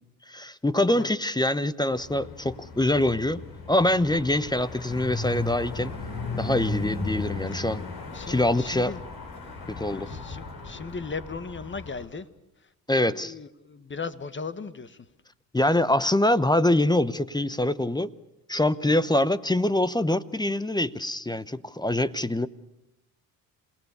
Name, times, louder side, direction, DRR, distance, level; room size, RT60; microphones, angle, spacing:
voice 1, 0.3-5.9 6.3-7.8 8.3-8.9 9.7-10.1 12.9-13.3 15.5-18.1 18.5-22.5, left 1 dB, 10° left, 16 dB, 0.9 m, -24 dB
sound 1, 1.9-12.1, left 3 dB, 60° left, 5.8 m, -36 dB
voice 2, 8.1-9.0 9.4-9.5 9.9-12.3 12.9-15.1 19.1-19.2, left 4 dB, 25° left, 13 dB, 1.6 m, -37 dB
27.5 x 18.0 x 6.7 m, 0.91 s
hypercardioid pair, 60°, 43 cm